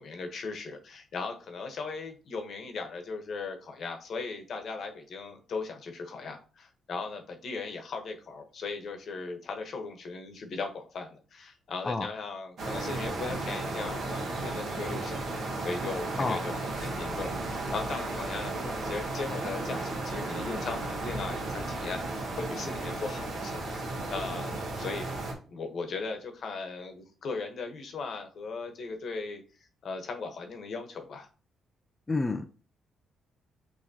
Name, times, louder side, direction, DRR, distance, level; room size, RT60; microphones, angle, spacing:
voice 1, 0.0-15.2 15.6-25.1 25.5-29.4 29.8-31.3, left 4 dB, 60° left, 5 dB, 1.0 m, -38 dB
sound 1, 12.6-25.3, right 2 dB, 65° right, 1.4 m, -34 dB
voice 2, 32.1-32.5, left 3 dB, 25° left, 5 dB, 0.4 m, -28 dB
6.2 x 2.9 x 2.8 m, 0.37 s
cardioid pair, 90°, 0 cm